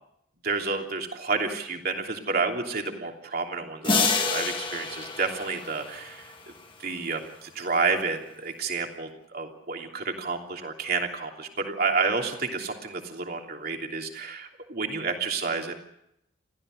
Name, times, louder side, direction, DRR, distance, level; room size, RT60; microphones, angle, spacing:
voice 1, 0.4-6.3 6.8-15.7, right 4 dB, 50° right, 2 dB, 3.1 m, -30 dB
sound 1, 3.8-6.3, left 4 dB, 25° left, 1.8 m, -28 dB
29.0 x 15.0 x 6.5 m, 0.79 s
head